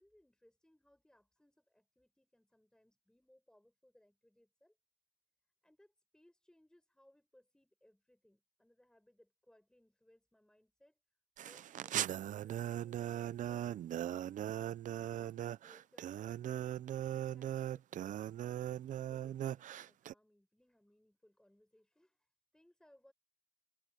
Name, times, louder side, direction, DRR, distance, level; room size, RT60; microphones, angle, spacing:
voice 1, 0.0-4.8 5.6-11.0 11.4-14.3 15.1-16.7 17.1-18.5 18.9-23.1, left 1 dB, 5° left, 5.2 m, -68 dB
sound 1, 11.4-20.1, right 11 dB, 50° right, 0.5 m, -39 dB
cardioid pair, 110°, 17 cm